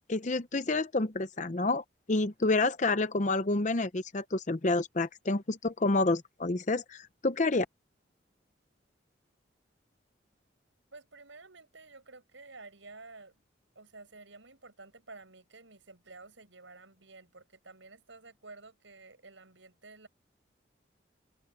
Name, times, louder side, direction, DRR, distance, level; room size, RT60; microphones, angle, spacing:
voice 1, 0.1-7.7, left 2 dB, 40° left, 0.7 m, -29 dB
voice 2, 10.9-13.4 13.8-20.1, right 3 dB, 90° right, 7.4 m, -52 dB
head